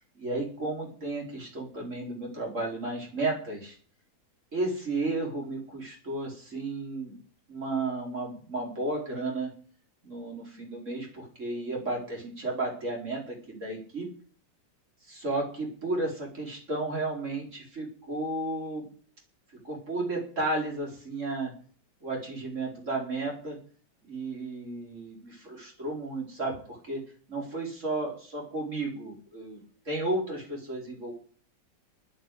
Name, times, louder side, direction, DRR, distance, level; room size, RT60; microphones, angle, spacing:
voice 1, 0.1-3.8 4.5-7.1 7.5-9.5 10.0-14.1 15.1-18.9 19.6-21.5 22.0-23.6 24.1-27.0 27.3-29.6 29.8-31.1, right 2 dB, 45° right, 0 dB, 5.0 m, -33 dB
10.5 x 9.6 x 9.5 m, 0.44 s
omnidirectional pair, 1.9 m